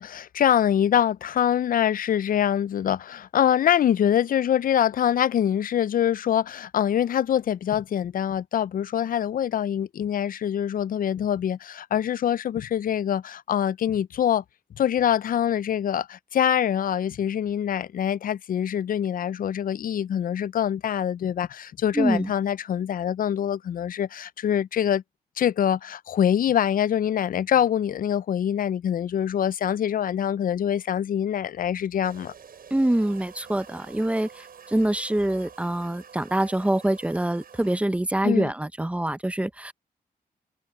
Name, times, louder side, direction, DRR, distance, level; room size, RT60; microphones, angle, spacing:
voice 1, 0.0-14.4 14.8-25.0 25.4-32.3 38.2-38.5, left 9 dB, 65° left, 0.4 m, -24 dB
voice 2, 21.9-22.3 32.7-39.7, right 1 dB, 10° right, 0.5 m, -25 dB
sound 1, 32.0-37.8, right 7 dB, 70° right, 8.0 m, -48 dB
cardioid pair, 95°, 16 cm